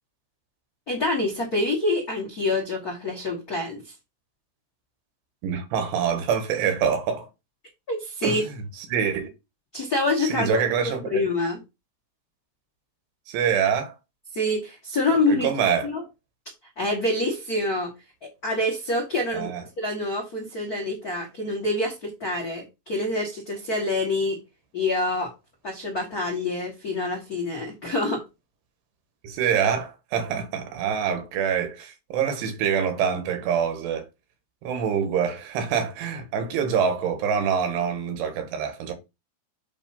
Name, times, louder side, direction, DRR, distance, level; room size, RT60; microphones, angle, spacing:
voice 1, 0.9-3.8 7.9-8.4 9.7-10.5 10.8-11.6 14.3-15.5 15.8-16.0 16.8-17.9 18.2-19.5 19.8-24.4 24.7-25.3 25.6-28.2, left 2 dB, 85° left, 0.8 m, -26 dB
voice 2, 5.4-7.3 8.2-8.5 8.9-9.3 10.2-11.2 13.3-13.9 15.3-15.9 19.3-19.6 29.2-34.1 34.6-38.9, right 7 dB, 85° right, 3.5 m, -25 dB
8.1 x 2.7 x 5.5 m
omnidirectional pair, 4.7 m